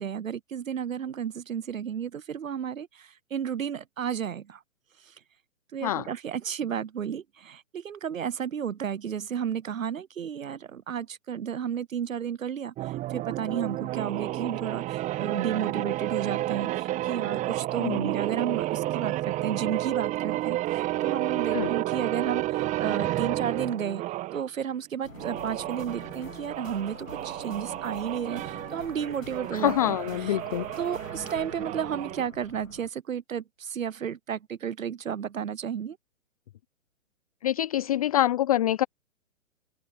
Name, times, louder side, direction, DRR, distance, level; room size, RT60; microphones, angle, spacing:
voice 1, 0.0-4.6 5.7-24.0 24.3-30.4 30.8-36.0, right 8 dB, 85° right, 0.8 m, -32 dB
sound 1, 12.8-24.4 25.1-32.2, right 16 dB, 20° right, 1.3 m, -31 dB
sound 2, 25.0-32.9, left 5 dB, 85° left, 1.6 m, -46 dB
voice 2, 29.5-30.6 37.4-38.8, left 13 dB, 30° left, 0.5 m, -25 dB
open air
figure-of-eight pair, 130°, 39 cm